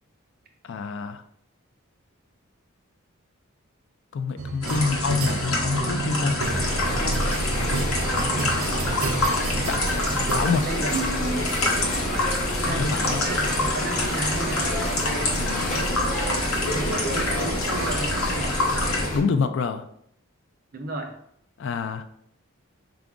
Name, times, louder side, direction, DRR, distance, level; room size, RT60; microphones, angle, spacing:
voice 1, 0.6-1.2 4.1-6.4 9.6-9.8 10.3-10.6 12.7-13.2 15.4-15.9 19.1-19.8 21.6-22.0, left 4 dB, 55° left, 9 dB, 0.3 m, -27 dB
sound 1, 4.4-10.5, right 4 dB, 90° right, 0.6 m, -31 dB
sound 2, 4.6-19.1, left 2 dB, 70° left, 0.9 m, -27 dB
sound 3, 6.4-19.2, equal, 35° left, 0.7 m, -29 dB
voice 2, 10.6-11.5 11.8-12.3 12.6-14.7 16.7-18.6 20.7-21.1, right 2 dB, 40° right, 3 dB, 0.6 m, -33 dB
4.7 x 2.4 x 3.6 m, 0.69 s
head